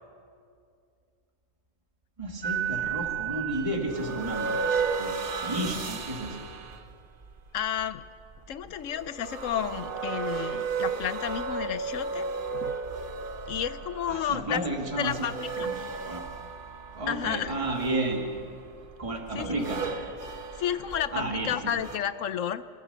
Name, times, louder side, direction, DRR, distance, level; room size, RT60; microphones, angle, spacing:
voice 1, 2.2-4.5 5.0-6.4 14.1-15.3 15.6-16.3 16.9-18.3 19.0-19.8 21.1-21.7, right 2 dB, 25° right, 1 dB, 2.2 m, -32 dB
sound 1, 2.4-22.0, right 5 dB, 40° right, 1.2 m, -34 dB
voice 2, 7.5-8.0 8.5-12.2 12.5-12.8 13.5-14.6 15.0-15.7 17.1-17.5 19.3-19.7 20.6-22.6, left 9 dB, 70° left, 14 dB, 1.0 m, -31 dB
29.5 x 15.0 x 6.8 m, 2.3 s
omnidirectional pair, 1.5 m